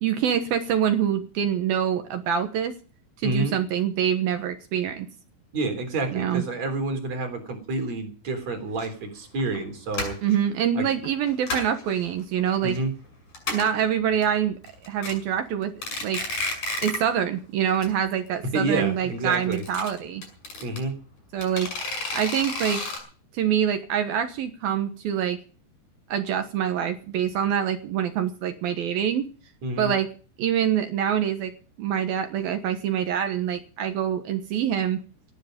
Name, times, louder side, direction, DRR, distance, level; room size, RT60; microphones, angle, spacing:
voice 1, 0.0-2.8 3.2-5.1 6.1-6.4 10.2-12.8 13.5-15.7 16.0-16.2 16.8-20.2 21.3-21.7 22.1-22.8 23.3-25.4 26.1-29.3 29.8-30.1 30.4-31.5 31.8-35.0, right 9 dB, 65° right, 7 dB, 2.5 m, -25 dB
voice 2, 3.2-3.5 5.5-10.2 10.7-10.9 12.6-12.9 18.5-19.6 20.6-20.9 29.6-29.9, right 2 dB, 40° right, 5 dB, 4.4 m, -28 dB
sound 1, 8.8-8.9 9.4-9.6 9.9-10.3 11.0-11.8 12.2-12.8 13.0-13.1 13.3-13.8 14.2-14.3 14.7-15.1 15.6-17.1 17.4-17.5 17.8-17.9 18.2-18.3 19.3-20.8 21.4-23.0, left 2 dB, 40° left, 7.5 m, -31 dB
18.5 x 12.5 x 5.3 m, 0.39 s
omnidirectional pair, 5.5 m